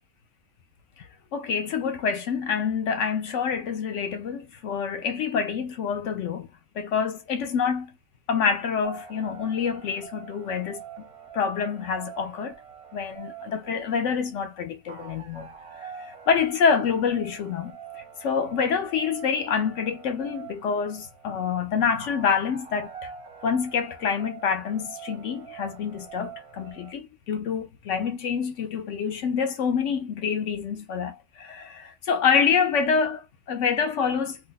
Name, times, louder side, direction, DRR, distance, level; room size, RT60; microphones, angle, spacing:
voice 1, 1.0-6.5 6.7-7.9 8.3-10.8 11.3-12.6 12.9-15.5 15.8-17.7 18.2-23.1 23.4-34.4, left 6 dB, 70° left, 0.7 m, -27 dB
sound 1, 8.8-26.9, right 7 dB, 35° right, 0.5 m, -45 dB
2.8 x 2.1 x 3.8 m
omnidirectional pair, 1.7 m